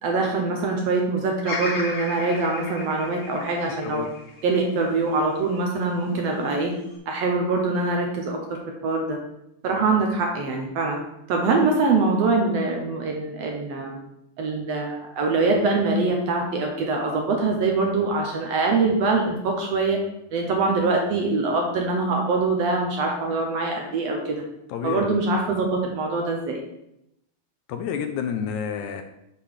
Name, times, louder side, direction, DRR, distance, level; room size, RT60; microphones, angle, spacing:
voice 1, 0.0-4.1 4.4-6.7 7.1-8.4 8.8-9.2 9.6-11.0 11.3-14.0 14.4-20.0 20.3-24.4 24.8-25.7 25.9-26.6, right 3 dB, 65° right, 1 dB, 1.7 m, -23 dB
Bird vocalization bird call bird song, 1.4-5.7 6.2-7.0, left 3 dB, 60° left, 0.8 m, -35 dB
voice 2, 24.7-25.1 27.7-29.0, left 7 dB, 80° left, 7 dB, 1.8 m, -29 dB
6.8 x 3.7 x 6.4 m, 0.83 s
omnidirectional pair, 3.6 m